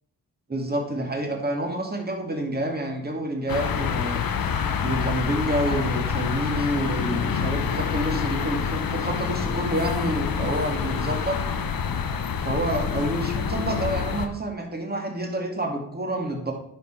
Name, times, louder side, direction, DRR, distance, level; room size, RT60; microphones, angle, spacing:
voice 1, 0.5-4.2 4.8-11.4 12.4-16.5, right 1 dB, 25° right, 2 dB, 2.1 m, -28 dB
sound 1, 3.5-14.3, left 7 dB, 60° left, 0.9 m, -27 dB
10.0 x 4.8 x 4.5 m, 0.75 s
cardioid pair, 65°, 39 cm